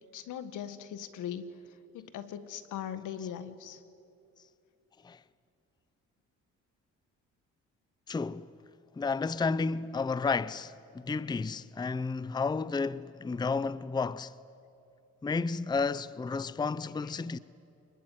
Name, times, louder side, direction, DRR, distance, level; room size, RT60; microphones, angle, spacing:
voice 1, 0.1-3.8 17.0-17.1, left 9 dB, 80° left, 1.6 m, -40 dB
voice 2, 8.1-8.5 9.0-14.3 15.2-17.4, left 4 dB, 15° left, 0.5 m, -32 dB
25.0 x 21.5 x 9.3 m
cardioid pair, 90°, 30 cm